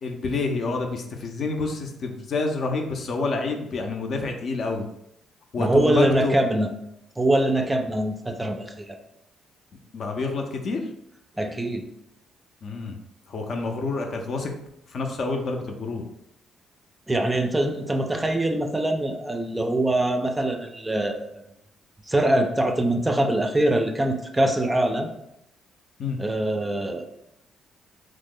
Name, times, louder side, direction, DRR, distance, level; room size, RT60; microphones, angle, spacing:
voice 1, 0.0-4.9 5.5-6.3 9.9-10.9 12.6-13.0 13.3-14.5 14.9-16.0 26.0-26.2, left 3 dB, 60° left, 3 dB, 0.5 m, -28 dB
voice 2, 5.6-6.7 7.2-9.0 11.4-11.8 17.1-21.3 22.1-25.1 26.2-27.1, right 1 dB, 15° right, 5 dB, 0.4 m, -23 dB
3.0 x 2.0 x 3.6 m, 0.80 s
cardioid pair, 90°, 0 cm